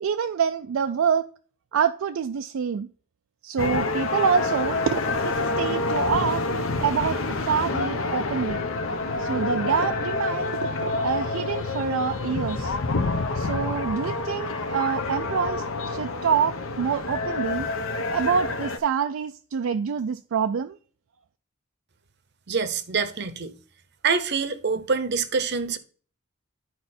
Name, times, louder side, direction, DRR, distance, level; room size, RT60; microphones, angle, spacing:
voice 1, 0.0-1.3 1.7-2.9 3.4-6.4 6.8-7.2 7.5-8.6 9.2-12.8 13.4-17.7 18.1-20.7, right 7 dB, 70° right, 0.4 m, -26 dB
sound 1, 3.6-18.8, left 3 dB, 70° left, 0.9 m, -28 dB
voice 2, 22.5-23.5 24.0-25.8, right 5 dB, 50° right, 0.8 m, -25 dB
11.0 x 4.7 x 4.2 m
head